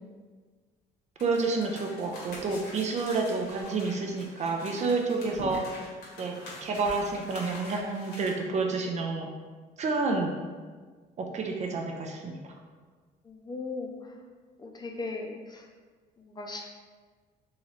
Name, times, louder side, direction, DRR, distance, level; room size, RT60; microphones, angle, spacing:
sound 1, 1.2-8.3, left 1 dB, 85° left, 1.5 m, -44 dB
voice 1, 1.2-5.7 6.2-9.3 9.8-10.4 11.2-12.4, right 3 dB, 40° right, 2 dB, 0.5 m, -29 dB
voice 2, 13.2-14.1 14.6-15.6 16.2-16.7, left 3 dB, 25° left, 1 dB, 0.5 m, -38 dB
3.7 x 3.0 x 3.1 m, 1.5 s
cardioid pair, 110°, 17 cm